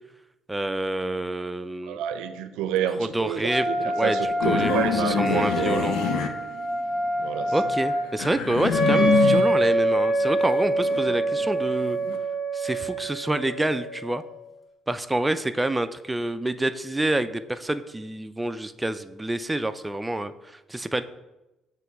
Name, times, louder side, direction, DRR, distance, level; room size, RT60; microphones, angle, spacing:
voice 1, 0.5-2.0 3.0-3.7 4.0-6.3 7.5-12.0 12.5-14.2 14.9-21.0, right 1 dB, 10° right, 11 dB, 0.3 m, -27 dB
voice 2, 1.8-5.9 7.2-7.5, right 9 dB, 90° right, 10 dB, 0.5 m, -29 dB
Wind instrument woodwind instrument, 3.5-8.1, equal, 45° left, 1.1 m, -28 dB
sound 1, 4.4-7.0 7.4-9.7 10.1-12.2, left 7 dB, 85° left, 0.6 m, -27 dB
Wind instrument woodwind instrument 2, 8.7-14.3, right 2 dB, 15° left, 1.6 m, -24 dB
7.8 x 3.1 x 4.5 m, 0.99 s
cardioid pair, 110°, 0 cm